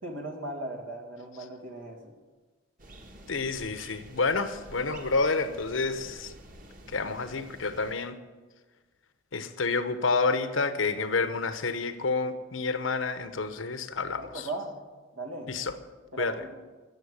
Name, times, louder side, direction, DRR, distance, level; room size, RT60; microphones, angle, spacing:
voice 1, 0.0-2.1 14.2-14.8 15.1-15.5 16.1-16.5, right 2 dB, 90° right, 2 dB, 2.4 m, -37 dB
sound 1, 2.8-7.9, right 1 dB, 45° right, 1.6 m, -49 dB
voice 2, 3.3-6.3 6.9-8.2 9.3-14.5 15.5-15.8 16.2-16.3, left 4 dB, 85° left, 10 dB, 1.0 m, -29 dB
13.5 x 8.1 x 9.7 m, 1.3 s
head